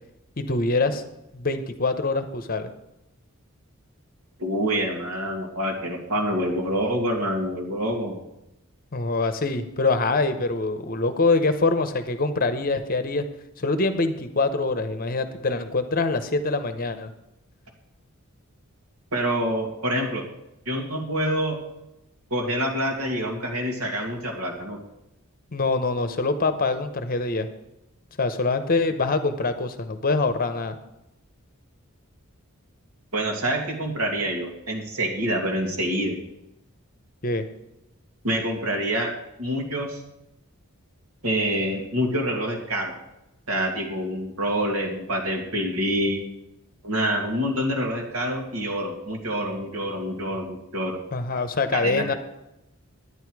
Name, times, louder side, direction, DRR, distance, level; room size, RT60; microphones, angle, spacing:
voice 1, 0.4-1.0 1.3-2.7 8.9-13.3 13.6-17.1 25.5-27.5 28.2-30.8 37.2-37.4 51.1-52.1, left 3 dB, 40° left, 9 dB, 0.8 m, -24 dB
voice 2, 4.4-8.1 19.1-20.2 20.7-21.6 22.3-24.8 33.1-36.2 38.2-39.1 39.4-40.0 41.2-42.9 43.5-46.2 46.8-51.0 51.7-52.2, equal, 75° right, 1 dB, 2.2 m, -26 dB
10.5 x 9.7 x 4.7 m, 0.89 s
head